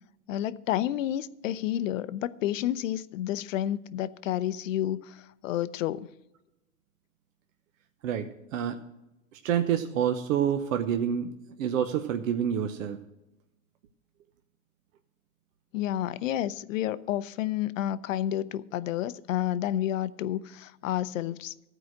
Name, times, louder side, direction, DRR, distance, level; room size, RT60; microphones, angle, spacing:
voice 1, 0.3-6.1 15.7-21.5, left 12 dB, 60° left, 0.6 m, -30 dB
voice 2, 8.0-8.8 9.3-11.3 11.6-13.0, right 9 dB, 60° right, 0.9 m, -28 dB
14.5 x 4.9 x 7.6 m
hypercardioid pair, 140°, 44 cm